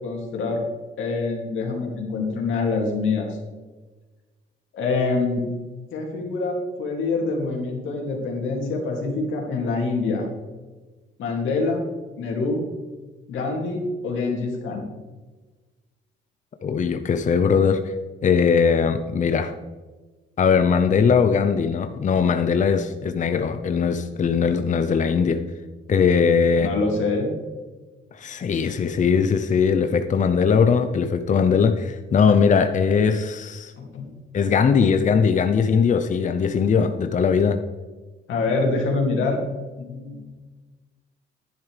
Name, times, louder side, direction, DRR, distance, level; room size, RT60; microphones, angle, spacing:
voice 1, 0.0-0.6 1.0-3.4 4.7-5.5 5.9-10.3 11.2-11.8 12.2-12.7 13.3-14.8 26.6-27.3 33.8-34.1 38.3-39.4 39.8-40.2, left 3 dB, 80° left, 0 dB, 2.6 m, -25 dB
voice 2, 16.6-17.8 18.2-19.5 20.4-25.4 25.9-26.7 28.1-33.7 34.3-37.6, left 6 dB, 40° left, 9 dB, 0.7 m, -20 dB
10.5 x 10.5 x 3.4 m, 1.3 s
cardioid pair, 90°, 20 cm